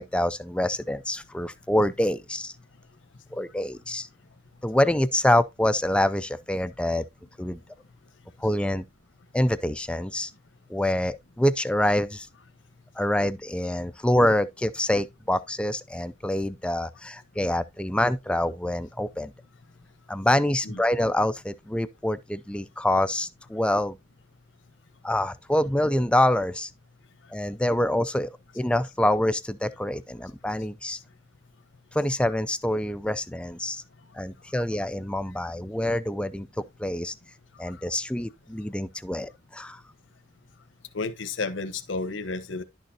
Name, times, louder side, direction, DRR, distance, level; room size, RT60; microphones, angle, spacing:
voice 1, 0.0-2.5 3.3-4.1 4.6-7.0 7.4-7.6 8.4-8.8 9.3-10.3 10.7-12.3 13.0-19.3 20.1-24.0 25.0-26.7 27.3-31.0 31.9-33.8 34.1-36.5 36.8-37.1 37.6-39.8, left 1 dB, 5° left, 0.4 m, -26 dB
voice 2, 40.9-42.6, left 3 dB, 85° left, 1.1 m, -31 dB
11.0 x 6.5 x 2.7 m
head